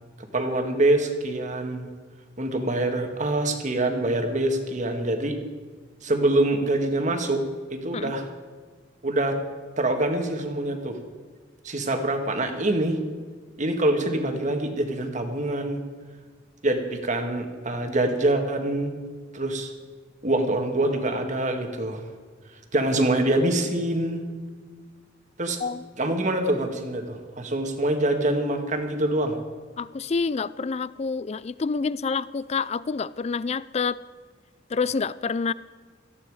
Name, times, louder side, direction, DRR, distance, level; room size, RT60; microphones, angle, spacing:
voice 1, 0.2-1.9 2.4-5.4 6.0-7.4 7.7-8.2 9.0-9.4 9.8-11.0 11.6-13.0 13.6-15.8 16.6-18.9 19.3-19.7 20.2-22.0 22.7-24.2 25.4-25.6 26.0-29.4, right 1 dB, 40° right, 5 dB, 1.8 m, -25 dB
voice 2, 29.8-34.0 34.7-35.5, left 5 dB, 35° left, 18 dB, 0.4 m, -27 dB
18.0 x 14.5 x 4.9 m, 1.5 s
head